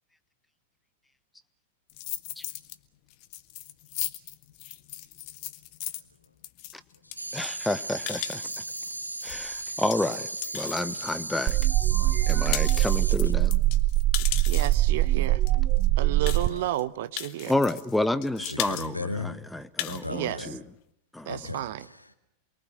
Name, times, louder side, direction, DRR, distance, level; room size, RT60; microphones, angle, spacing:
sound 1, 1.9-2.8 3.1-11.7 12.1-14.9 15.5-15.6 15.8-15.9 16.3-16.8 17.2-18.0 18.2-18.9 19.2-19.3 19.6-20.1, left 15 dB, 45° left, 1.5 m, -37 dB
sound 2, 7.2-13.2, right 2 dB, 85° right, 0.9 m, -36 dB
voice 1, 7.3-8.6 9.2-11.7 12.3-13.6 17.5-20.6 21.1-21.3, left 1 dB, 5° left, 1.2 m, -30 dB
sound 3, 11.5-16.5, right 16 dB, 35° right, 0.8 m, -23 dB
voice 2, 11.9-12.4 12.9-13.0 16.3-16.7 18.4-19.3 19.8-20.6 21.3-22.1, left 2 dB, 85° left, 2.2 m, -37 dB
voice 3, 14.5-15.4 16.0-17.5 20.1-20.4 21.3-21.8, right 14 dB, 55° right, 1.1 m, -32 dB
28.5 x 22.5 x 6.4 m
figure-of-eight pair, 90°, 0 cm